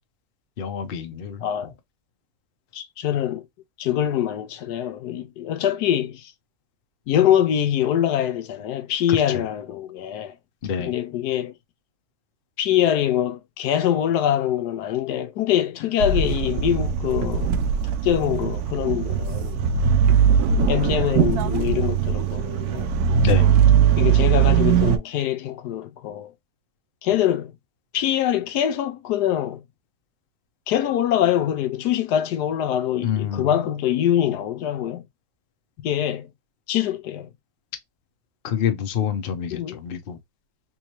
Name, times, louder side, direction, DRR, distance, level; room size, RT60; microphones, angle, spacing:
voice 1, 0.6-1.4 10.6-10.9 23.2-23.5 33.0-33.5 38.4-40.2, left 8 dB, 50° left, 0.7 m, -26 dB
voice 2, 1.4-1.7 2.7-3.4 3.8-6.3 7.1-10.4 10.8-11.5 12.6-17.6 18.0-19.6 20.7-22.9 24.0-26.3 27.0-27.5 27.9-29.6 30.7-35.1 35.8-36.3 36.7-37.3 39.5-39.8, left 11 dB, 80° left, 1.1 m, -24 dB
sound 1, 16.0-25.0, right 8 dB, 70° right, 1.0 m, -20 dB
3.7 x 3.0 x 2.9 m
omnidirectional pair, 1.8 m